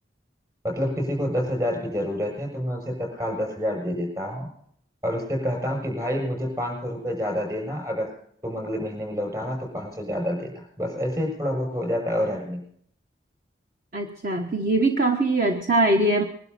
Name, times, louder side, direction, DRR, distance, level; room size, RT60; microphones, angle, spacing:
voice 1, 0.6-4.5 5.0-8.1 8.4-12.7, equal, 20° right, 1 dB, 7.5 m, -28 dB
voice 2, 13.9-16.2, right 2 dB, 50° right, 3 dB, 1.3 m, -22 dB
22.5 x 12.0 x 4.2 m, 0.67 s
head